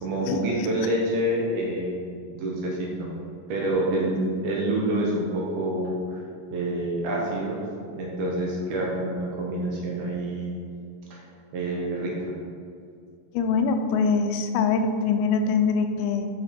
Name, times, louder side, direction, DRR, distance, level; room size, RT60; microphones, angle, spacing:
voice 1, 0.0-3.1 3.5-6.2 6.5-7.6 8.0-10.6 11.1-11.2 11.5-12.1, right 1 dB, 70° right, -3 dB, 2.8 m, -27 dB
voice 2, 13.3-16.3, left 5 dB, 85° left, 6 dB, 2.8 m, -23 dB
9.6 x 5.8 x 4.4 m, 2.4 s
omnidirectional pair, 5.1 m